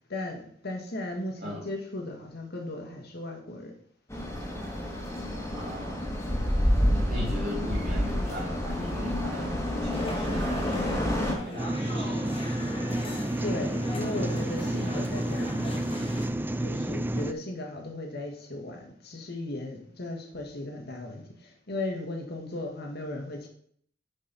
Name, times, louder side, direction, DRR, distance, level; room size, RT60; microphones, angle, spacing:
voice 1, 0.1-3.7 13.4-15.9 16.6-23.5, left 2 dB, 60° left, 2 dB, 1.8 m, -36 dB
sound 1, 4.1-11.3, equal, 15° left, 1.7 m, -28 dB
voice 2, 5.5-6.1 6.9-12.1, left 1 dB, 50° right, -7 dB, 2.2 m, -39 dB
sound 2, 9.9-16.3, left 1 dB, 30° left, 1.6 m, -40 dB
sound 3, 11.6-17.3, right 1 dB, 10° right, 0.4 m, -30 dB
9.6 x 5.4 x 4.2 m, 0.64 s
head